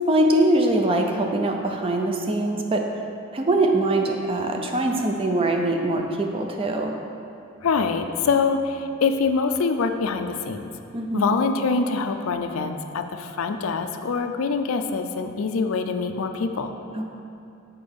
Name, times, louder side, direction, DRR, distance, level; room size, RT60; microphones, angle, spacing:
voice 1, 0.1-2.9 3.3-6.9 10.9-11.3 16.9-17.1, right 1 dB, 25° right, 3 dB, 0.5 m, -22 dB
voice 2, 7.6-10.7 11.1-16.7, left 4 dB, 75° left, 7 dB, 0.4 m, -24 dB
6.8 x 4.4 x 5.3 m, 2.6 s
head